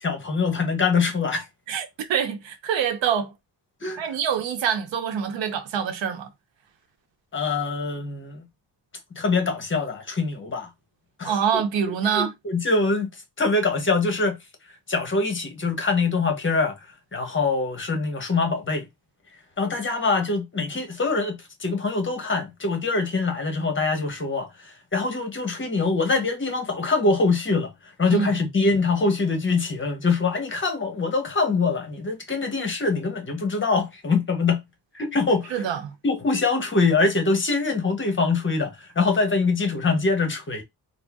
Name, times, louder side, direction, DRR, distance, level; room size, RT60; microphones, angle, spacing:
voice 1, 0.0-1.4 3.8-4.0 7.3-8.4 9.2-10.7 11.2-11.4 12.1-13.1 13.4-14.4 14.9-16.8 17.1-18.9 19.6-27.7 28.0-34.6 34.9-35.6 36.0-40.6, left 3 dB, 25° left, 1.0 m, -24 dB
voice 2, 1.7-3.3 4.0-6.3 11.2-12.3 28.1-28.3 35.5-35.9, right 7 dB, 90° right, 0.8 m, -25 dB
4.0 x 2.0 x 3.5 m
wide cardioid pair, 145°, 43 cm